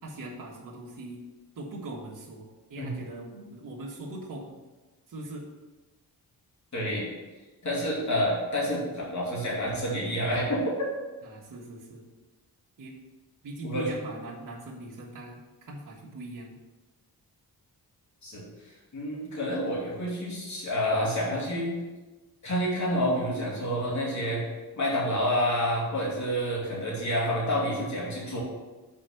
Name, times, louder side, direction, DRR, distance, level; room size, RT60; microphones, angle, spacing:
voice 1, 0.0-1.2 1.5-4.5 5.1-5.5 11.2-12.0 12.8-12.9 13.4-16.6, right 2 dB, 60° right, -5 dB, 1.5 m, -41 dB
voice 2, 6.7-7.1 7.6-10.7 13.6-13.9 18.2-21.7 22.4-24.5 24.8-28.4, equal, 50° left, -5 dB, 2.7 m, -28 dB
6.1 x 4.5 x 6.5 m, 1.2 s
wide cardioid pair, 105°, 37 cm